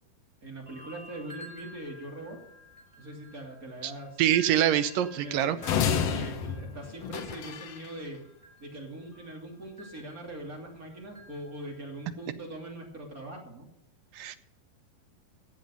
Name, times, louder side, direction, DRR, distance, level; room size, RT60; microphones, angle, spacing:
voice 1, 0.4-2.4 3.0-4.2 5.2-8.2 8.6-13.7, right 1 dB, 25° right, 0 dB, 2.7 m, -42 dB
sound 1, 0.7-12.2, equal, 10° right, 4.6 m, -52 dB
voice 2, 4.2-5.6 14.1-14.4, right 11 dB, 75° right, 11 dB, 2.1 m, -25 dB
sound 2, 5.6-7.9, left 7 dB, 90° left, 1.4 m, -30 dB
15.5 x 7.8 x 5.5 m, 0.82 s
omnidirectional pair, 4.4 m